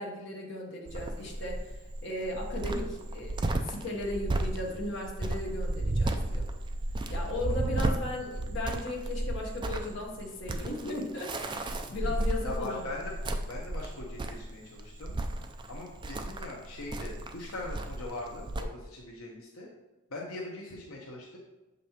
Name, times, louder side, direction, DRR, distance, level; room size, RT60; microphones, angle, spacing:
voice 1, 0.0-1.7 2.0-6.5 7.1-12.8, left 1 dB, 55° left, -1 dB, 1.0 m, -36 dB
Cricket, 0.9-18.6, right 2 dB, 20° right, 0.3 m, -33 dB
voice 2, 7.5-7.9 11.9-12.1 12.4-13.1 13.5-15.2 15.7-19.7 20.1-21.4, left 2 dB, 75° left, -2 dB, 0.8 m, -41 dB
6.6 x 5.2 x 2.8 m, 1.1 s
head